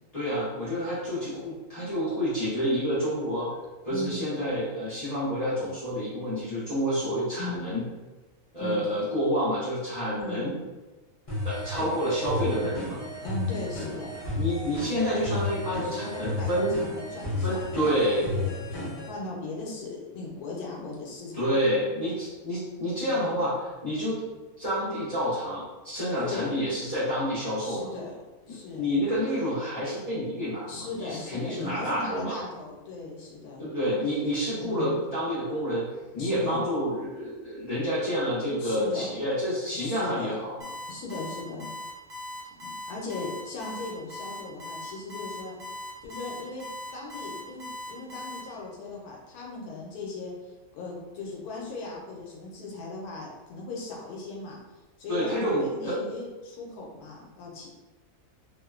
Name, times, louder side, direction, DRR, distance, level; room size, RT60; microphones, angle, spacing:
voice 1, 0.1-3.5 3.8-7.8 8.5-10.6 11.4-13.0 14.4-16.8 17.4-18.3 21.3-24.2 24.6-27.9 28.5-32.4 33.6-35.9 36.1-40.7 55.1-56.0, equal, 35° left, -11 dB, 0.7 m, -28 dB
voice 2, 3.9-4.3 7.4-7.7 8.6-8.8 10.2-10.6 13.2-14.2 15.8-17.9 18.2-21.7 23.1-23.4 26.2-26.5 27.6-28.1 28.5-29.0 30.7-33.6 34.6-35.0 36.2-36.6 38.6-39.1 39.7-40.3 40.9-41.7 42.6-45.6 46.0-46.7 46.9-50.3 50.7-54.6 55.0-57.7, left 3 dB, 85° left, -2 dB, 1.1 m, -38 dB
sound 1, 11.3-19.1, left 2 dB, 60° left, 0.3 m, -33 dB
Alarm, 40.6-48.4, left 1 dB, 65° right, 0.4 m, -39 dB
2.9 x 2.0 x 2.3 m, 1.2 s
omnidirectional pair, 1.6 m